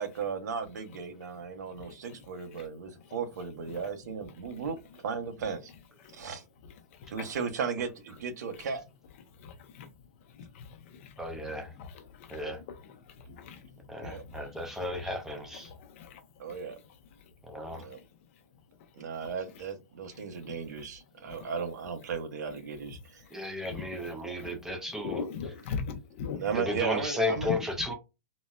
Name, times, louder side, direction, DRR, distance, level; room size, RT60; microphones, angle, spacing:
voice 1, 0.0-5.7 6.1-6.4 7.1-8.8 14.0-14.2 16.4-16.8 17.7-18.0 18.9-23.2 26.4-27.5, right 6 dB, 70° right, 0.7 m, -36 dB
voice 2, 1.6-3.2 3.7-3.9 4.5-4.7 6.0-6.3 6.6-7.4 8.5-8.7 9.3-9.9 10.2-15.2 15.5-17.3 17.6-18.1 18.3-18.4 18.8-18.9 19.2-19.3 20.1-20.9 21.2-21.5 22.5-22.6 23.2-26.5 27.4-27.6, left 6 dB, 45° left, 0.7 m, -43 dB
voice 3, 11.2-11.7 12.3-12.6 13.9-15.7 17.5-17.9 23.3-25.2 26.5-27.9, left 1 dB, 5° right, 0.3 m, -34 dB
4.0 x 2.1 x 2.2 m
hypercardioid pair, 165°, 9 cm